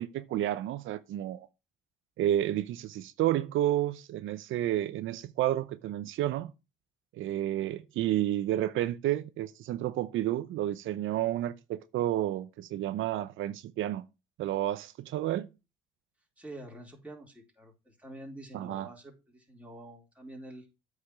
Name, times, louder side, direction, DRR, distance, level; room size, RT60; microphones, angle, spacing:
voice 1, 0.0-1.5 2.2-6.5 7.1-14.0 14.4-15.5 18.5-18.9, right 13 dB, 85° right, 0.7 m, -31 dB
voice 2, 16.4-20.7, right 1 dB, 5° right, 4.1 m, -47 dB
8.5 x 5.1 x 6.2 m
cardioid pair, 90°, 20 cm